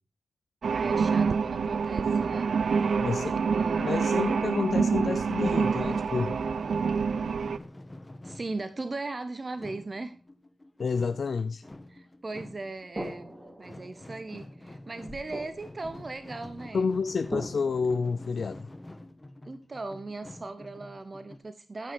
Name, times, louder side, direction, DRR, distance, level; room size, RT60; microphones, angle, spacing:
voice 1, 0.6-2.8 3.4-3.9 8.2-10.2 11.9-13.3 13.6-16.9 19.4-21.9, right 3 dB, 45° right, 0.8 m, -38 dB
sound 1, 0.6-7.6, right 5 dB, 75° right, 0.5 m, -27 dB
voice 2, 3.0-3.4 3.8-6.4 10.8-11.6 16.7-18.7, left 5 dB, 70° left, 0.4 m, -29 dB
sound 2, 5.6-21.4, left 1 dB, 25° left, 1.3 m, -47 dB
sound 3, 13.0-19.1, right 1 dB, 30° right, 3.3 m, -43 dB
14.0 x 5.9 x 4.3 m
cardioid pair, 40°, 0 cm